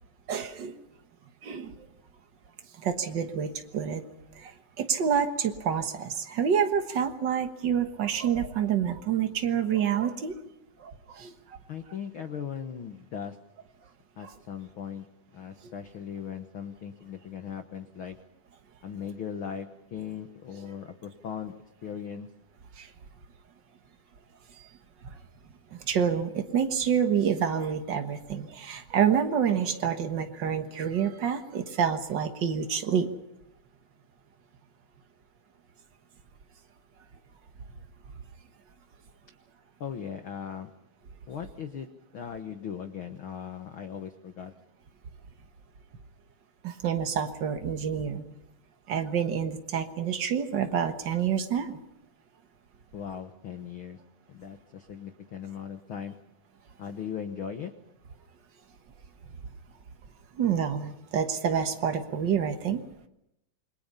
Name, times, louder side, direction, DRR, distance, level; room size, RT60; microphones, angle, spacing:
voice 1, 0.3-0.8 1.4-1.9 2.8-4.0 4.3-10.3 10.8-11.6 14.2-14.3 15.6-15.7 22.8-22.9 25.0-25.2 25.7-33.1 46.6-48.2 48.9-51.8 60.4-62.8, right 8 dB, 60° right, 6 dB, 1.1 m, -28 dB
voice 2, 11.7-13.4 14.2-15.1 15.3-18.2 18.8-21.6 21.8-22.3 39.8-40.7 41.3-41.9 42.1-44.5 52.9-54.0 54.3-56.2 56.8-57.7, left 8 dB, 85° left, 7 dB, 1.1 m, -38 dB
29.0 x 22.5 x 5.6 m, 0.82 s
omnidirectional pair, 4.1 m